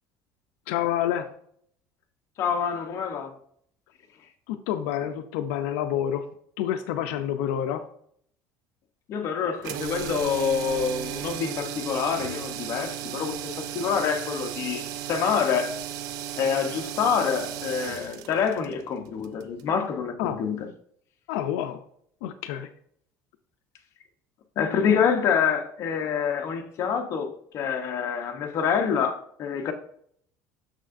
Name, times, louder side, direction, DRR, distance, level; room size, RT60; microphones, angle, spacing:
voice 1, 0.7-1.3 4.5-6.2 6.6-7.8 20.2-20.4 21.3-21.8 22.2-22.7, left 10 dB, 90° left, 0.5 m, -28 dB
voice 2, 2.4-3.3 9.1-15.8 16.4-20.7 24.6-29.7, left 6 dB, 45° left, 0.9 m, -26 dB
sound 1, 9.6-19.7, right 11 dB, 70° right, 0.5 m, -35 dB
6.6 x 6.2 x 2.6 m
cardioid pair, 140°, 7 cm